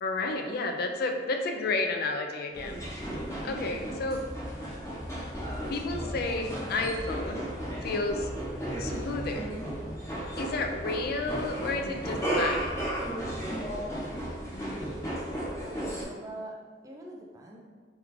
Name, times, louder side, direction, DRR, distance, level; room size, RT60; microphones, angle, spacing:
voice 1, 0.0-2.8 3.4-4.2 5.7-7.5 7.8-8.3 8.8-9.5 10.4-12.8, left 3 dB, 55° left, 4 dB, 0.4 m, -31 dB
sound 1, 2.5-16.0, right 1 dB, 15° left, 0.8 m, -34 dB
voice 2, 15.6-17.6, right 1 dB, 20° right, -1 dB, 0.5 m, -43 dB
3.1 x 2.4 x 3.6 m, 1.5 s
head